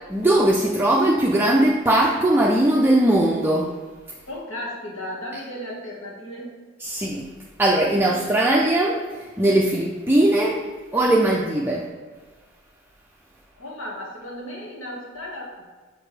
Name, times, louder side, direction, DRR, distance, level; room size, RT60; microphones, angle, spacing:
voice 1, 0.1-3.7 6.8-7.3 7.6-10.6 10.9-11.9, right 1 dB, 10° right, -3 dB, 0.4 m, -19 dB
voice 2, 4.3-6.5 13.6-15.5, left 1 dB, 85° left, -3 dB, 1.7 m, -34 dB
7.0 x 5.2 x 3.2 m, 1.4 s
head